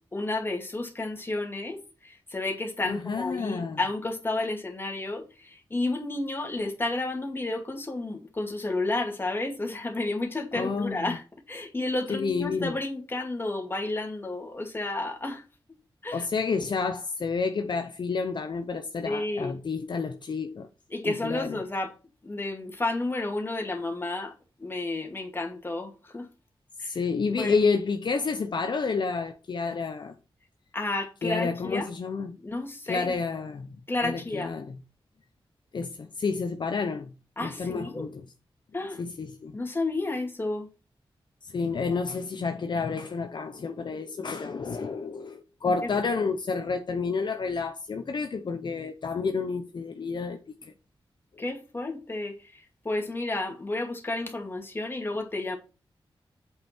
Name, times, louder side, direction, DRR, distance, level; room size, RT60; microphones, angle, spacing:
voice 1, 0.1-15.4 16.0-16.3 19.1-19.6 20.9-21.9 22.2-24.3 24.6-26.3 26.8-26.9 27.4-27.6 30.7-31.9 32.4-33.2 33.9-34.5 37.4-38.1 38.7-39.0 39.5-40.7 51.4-55.6, left 2 dB, 25° left, 2.3 m, -31 dB
voice 2, 2.8-3.8 10.5-11.2 12.1-12.7 16.1-20.7 21.0-21.6 26.8-30.2 31.2-32.4 32.9-34.8 35.7-37.1 37.4-38.3 38.9-39.6 41.4-50.7, left 4 dB, 55° left, 0.8 m, -30 dB
8.2 x 5.5 x 4.4 m
wide cardioid pair, 120°, 9 cm